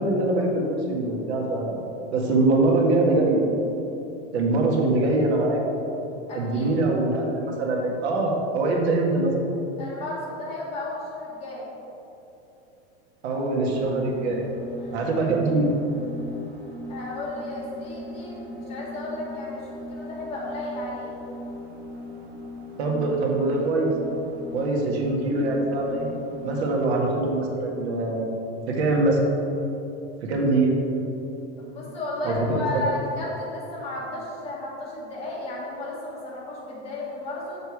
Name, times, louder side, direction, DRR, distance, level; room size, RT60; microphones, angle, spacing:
voice 1, 0.0-1.8 2.1-3.4 4.3-5.6 6.3-9.3 13.2-14.4 14.9-15.7 22.8-23.9 24.5-26.1 26.4-28.2 28.7-29.2 30.2-30.7 32.2-32.8, right 2 dB, 75° right, 0 dB, 1.7 m, -23 dB
voice 2, 6.3-6.7 9.8-11.7 14.8-15.0 16.9-21.1 31.6-37.6, left 2 dB, 20° left, -7 dB, 1.8 m, -33 dB
sound 1, 13.5-27.0, left 1 dB, 30° right, 1.0 m, -39 dB
7.0 x 6.6 x 4.8 m, 2.9 s
supercardioid pair, 175°, 33 cm